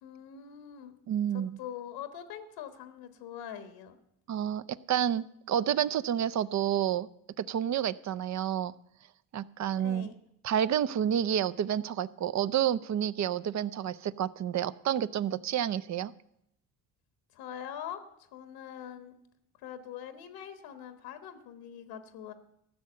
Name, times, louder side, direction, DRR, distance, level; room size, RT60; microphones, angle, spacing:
voice 1, 0.0-0.9 1.3-4.0 9.8-10.1 17.3-19.1 19.6-22.3, left 9 dB, 85° left, 1.4 m, -43 dB
voice 2, 1.1-1.5 4.3-4.6 4.9-7.1 7.4-8.7 9.3-10.1 10.4-16.1, right 10 dB, 45° right, 0.6 m, -29 dB
14.0 x 6.5 x 8.9 m
supercardioid pair, 85°, 39 cm